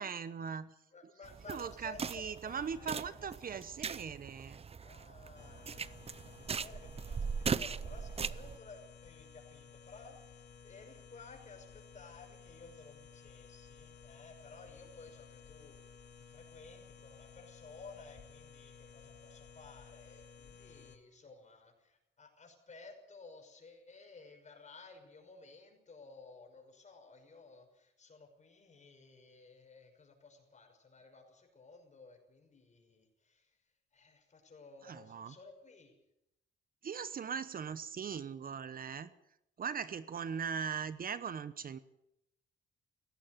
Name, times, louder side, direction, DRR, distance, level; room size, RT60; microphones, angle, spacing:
voice 1, 0.0-0.7 1.0-1.1 1.5-4.7 34.8-35.3 36.8-39.1 39.6-41.8, right 6 dB, 45° right, 14 dB, 1.0 m, -40 dB
voice 2, 0.9-3.3 4.8-33.6 33.9-36.0, left 4 dB, 35° left, 4 dB, 6.2 m, -55 dB
sound 1, 1.2-8.6, right 6 dB, 30° right, 0.6 m, -40 dB
sound 2, 5.3-21.0, left 6 dB, 60° left, 2.8 m, -56 dB
17.5 x 15.5 x 9.5 m, 0.84 s
cardioid pair, 90°, 20 cm